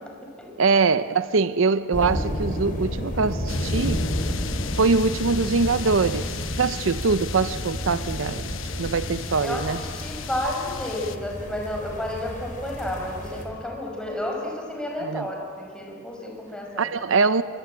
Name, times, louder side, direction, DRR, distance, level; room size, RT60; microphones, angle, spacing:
voice 1, 0.6-4.0 4.7-8.5 8.8-9.8 15.0-15.3 16.8-17.4, right 4 dB, 70° right, 0.6 m, -23 dB
sound 1, 1.9-13.5, equal, 45° left, 4.1 m, -31 dB
sound 2, 3.5-11.2, left 7 dB, 70° left, 1.0 m, -37 dB
voice 2, 9.4-16.9, left 1 dB, 5° left, 5.5 m, -31 dB
27.5 x 24.5 x 8.8 m
head